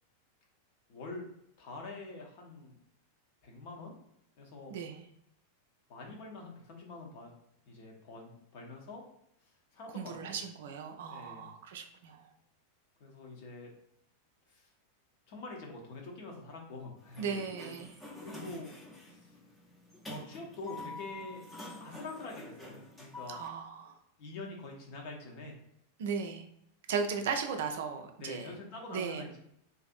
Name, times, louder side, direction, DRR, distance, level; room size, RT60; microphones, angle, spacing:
voice 1, 0.9-1.3 1.6-2.8 3.4-4.0 4.4-4.7 5.9-7.3 7.7-9.0 9.7-10.4 11.1-11.5 13.0-13.7 14.5-14.7 15.3-17.4 18.2-18.7 19.1-19.4 20.0-21.5 21.8-23.4 24.2-25.6 27.2-27.3 28.2-29.4, left 3 dB, 45° left, 0 dB, 0.7 m, -45 dB
voice 2, 9.9-12.2 17.2-18.0 23.3-23.9 26.0-26.4 26.9-28.5 28.9-29.2, right 6 dB, 55° right, 5 dB, 0.3 m, -36 dB
Sliding door, 17.0-23.5, left 1 dB, 10° left, 0.6 m, -47 dB
2.5 x 2.5 x 2.4 m, 0.74 s
figure-of-eight pair, 90°, 0 cm